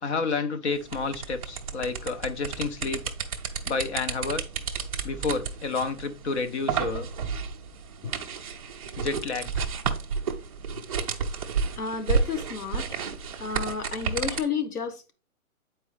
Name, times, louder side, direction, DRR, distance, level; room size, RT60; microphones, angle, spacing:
voice 1, 0.0-3.0 3.7-4.4 5.0-7.1 8.0-8.1 9.0-9.5, left 4 dB, 50° left, 1.0 m, -30 dB
sound 1, 0.7-14.4, right 5 dB, 25° right, 0.5 m, -32 dB
voice 2, 11.8-13.0 13.3-15.1, left 6 dB, 90° left, 1.5 m, -31 dB
8.5 x 4.6 x 3.3 m
hypercardioid pair, 160°, 44 cm